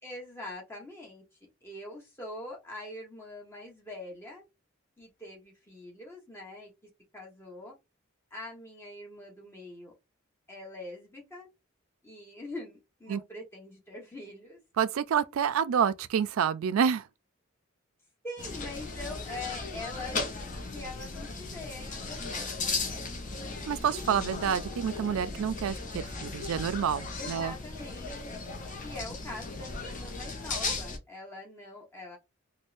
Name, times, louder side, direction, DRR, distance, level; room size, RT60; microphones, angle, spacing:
voice 1, 0.0-1.2 1.6-4.4 5.0-6.7 7.1-7.7 8.3-9.9 10.5-11.5 12.0-14.6 18.2-22.9 27.1-28.4 28.8-32.2, left 2 dB, 10° left, 1.1 m, -43 dB
voice 2, 14.8-17.0 23.7-27.5, right 7 dB, 85° right, 0.3 m, -28 dB
sound 1, 18.4-31.0, left 3 dB, 40° left, 0.6 m, -36 dB
3.5 x 2.1 x 2.5 m
head